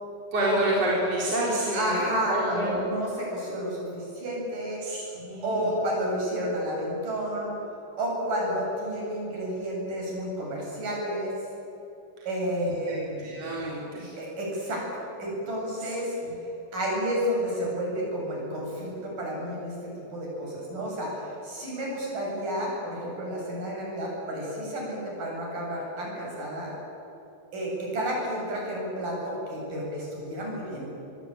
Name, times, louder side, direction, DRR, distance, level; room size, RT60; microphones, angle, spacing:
voice 1, 0.3-2.8 4.8-5.7 12.6-14.1 15.8-15.9 16.2-16.3, right 1 dB, 45° right, -5 dB, 5.3 m, -29 dB
voice 2, 1.7-4.8 5.4-7.5 8.0-11.3 12.3-13.3 14.2-14.8 15.2-16.2 16.7-26.7 27.5-30.9, equal, 60° right, -3 dB, 9.7 m, -31 dB
26.0 x 22.5 x 9.1 m, 3.0 s
omnidirectional pair, 4.2 m